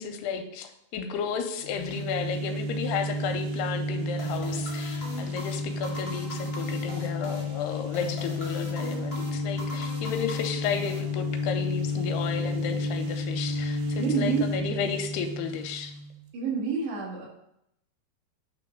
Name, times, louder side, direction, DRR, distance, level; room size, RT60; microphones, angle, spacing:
voice 1, 0.0-15.9, left 6 dB, 85° left, 6 dB, 2.6 m, -33 dB
sound 1, 1.6-16.2, left 2 dB, 75° right, 2.3 m, -31 dB
sound 2, 4.2-11.6, equal, 35° left, 0.7 m, -42 dB
voice 2, 14.0-14.5 16.3-17.3, right 5 dB, 90° right, -5 dB, 4.2 m, -28 dB
9.1 x 3.2 x 5.6 m, 0.78 s
omnidirectional pair, 4.7 m